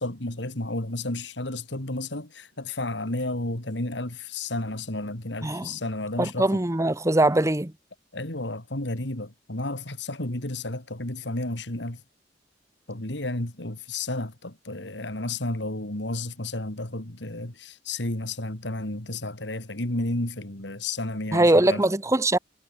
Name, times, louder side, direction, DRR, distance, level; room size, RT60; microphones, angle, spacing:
voice 1, 0.0-6.6 8.1-12.0 12.9-21.8, left 2 dB, 70° left, 3.2 m, -32 dB
voice 2, 5.4-5.7 6.2-7.7 21.3-22.4, right 1 dB, 15° right, 1.1 m, -21 dB
head